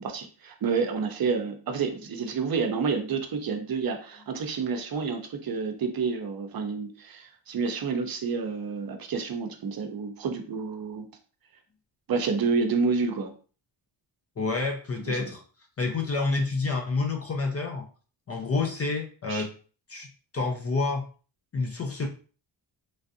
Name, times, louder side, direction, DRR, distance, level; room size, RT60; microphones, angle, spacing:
voice 1, 0.0-11.1 12.1-13.3 15.1-15.3 19.3-19.5, right 5 dB, 50° right, 5 dB, 0.7 m, -29 dB
voice 2, 14.4-15.4 15.8-17.9 18.3-19.5 19.9-20.1 20.3-21.1 21.5-22.1, left 3 dB, 35° left, 3 dB, 0.5 m, -28 dB
3.2 x 2.5 x 2.5 m, 0.38 s
cardioid pair, 105°, 44 cm